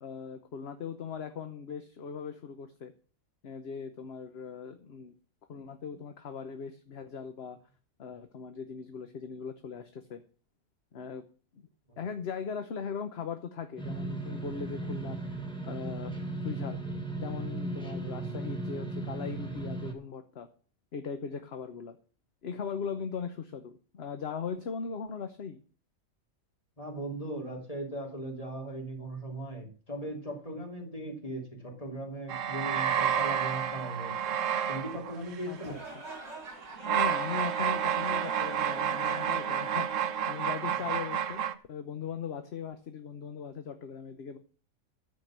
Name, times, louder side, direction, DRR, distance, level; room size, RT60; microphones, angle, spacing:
voice 1, 0.0-2.9 3.4-5.1 5.5-7.6 8.0-10.2 10.9-11.2 11.5-11.7 12.0-16.1 16.4-16.8 17.2-20.5 20.9-22.0 22.4-25.6 35.5-35.8 36.9-41.4 41.7-44.4, left 6 dB, 55° left, 8 dB, 1.1 m, -39 dB
sound 1, 13.8-19.9, right 2 dB, 5° left, 2.0 m, -36 dB
voice 2, 26.8-34.4 34.7-35.8, right 1 dB, 25° left, 1 dB, 3.1 m, -38 dB
sound 2, 32.3-35.8 36.5-41.5, right 8 dB, 65° right, 1.2 m, -30 dB
sound 3, 35.5-40.7, right 2 dB, 50° right, 3.9 m, -46 dB
13.5 x 5.2 x 7.4 m, 0.39 s
omnidirectional pair, 1.4 m